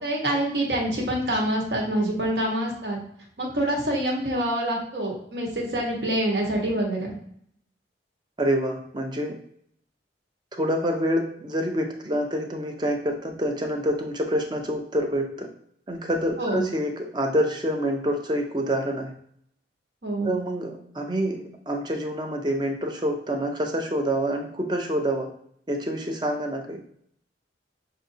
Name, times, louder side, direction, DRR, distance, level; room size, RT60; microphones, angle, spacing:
voice 1, 0.0-3.0 3.4-7.1 16.4-16.6 20.0-20.3, right 1 dB, 65° right, -1 dB, 1.3 m, -26 dB
voice 2, 8.4-9.3 10.6-15.5 15.9-19.1 20.2-25.3 25.7-26.8, equal, 25° right, 3 dB, 0.6 m, -27 dB
6.1 x 2.6 x 2.7 m, 0.66 s
head